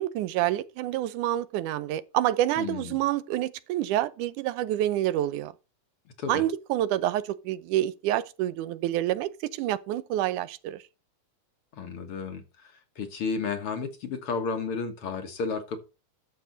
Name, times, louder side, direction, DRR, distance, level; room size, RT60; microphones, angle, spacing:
voice 1, 0.0-5.5 6.3-10.8, right 13 dB, 90° right, 2.3 m, -28 dB
voice 2, 2.6-3.0 6.2-6.4 11.7-15.8, left 5 dB, 55° left, 2.1 m, -33 dB
12.0 x 7.1 x 4.0 m
omnidirectional pair, 3.5 m